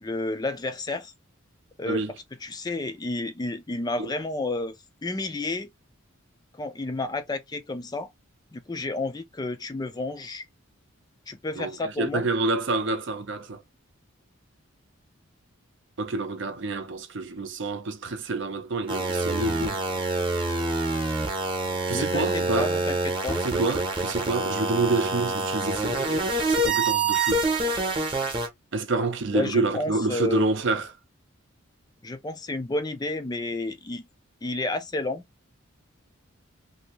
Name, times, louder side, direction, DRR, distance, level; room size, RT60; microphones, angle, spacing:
voice 1, 0.0-1.1 1.8-2.0 2.4-4.8 5.0-5.7 6.5-8.1 8.5-10.4 11.3-12.3 21.9-23.4 29.3-30.5 32.0-34.1 34.4-35.2, left 2 dB, 20° left, 0.3 m, -31 dB
voice 2, 11.5-13.6 16.0-19.8 21.9-22.7 23.4-27.4 28.7-30.9, right 3 dB, 55° right, 0.6 m, -28 dB
sound 1, 18.9-28.5, right 2 dB, 25° right, 0.9 m, -26 dB
2.8 x 2.7 x 2.9 m
head